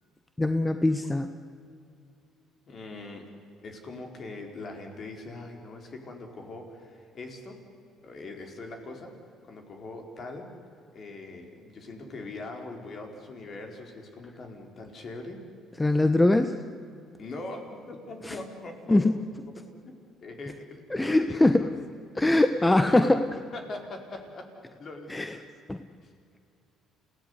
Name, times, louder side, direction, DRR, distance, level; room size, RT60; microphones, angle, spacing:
voice 1, 0.4-1.3 15.8-16.6 18.2-18.4 18.9-19.2 20.9-21.7 22.2-23.3 25.1-25.4 25.7-25.8, left 2 dB, 15° left, 9 dB, 1.1 m, -22 dB
voice 2, 2.7-3.3 3.6-7.6 8.0-9.1 9.5-10.5 10.9-15.4 17.2-19.0 20.2-21.7 22.6-23.2 23.5-24.5 24.8-25.4 26.0-26.1, left 2 dB, 45° left, 3 dB, 4.8 m, -41 dB
28.0 x 17.0 x 9.9 m, 2.4 s
supercardioid pair, 85°, 0 cm